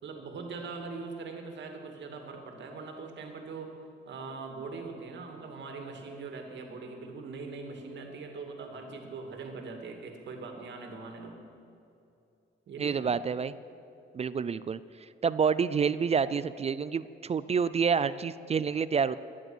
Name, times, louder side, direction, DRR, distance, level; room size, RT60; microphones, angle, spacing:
voice 1, 0.0-3.7 4.1-11.4 12.7-13.1, right 4 dB, 65° right, 3 dB, 2.3 m, -41 dB
voice 2, 12.8-13.5 14.1-14.8 15.2-19.2, right 6 dB, 30° right, 16 dB, 0.4 m, -28 dB
15.5 x 11.0 x 6.2 m, 2.7 s
cardioid pair, 90°, 20 cm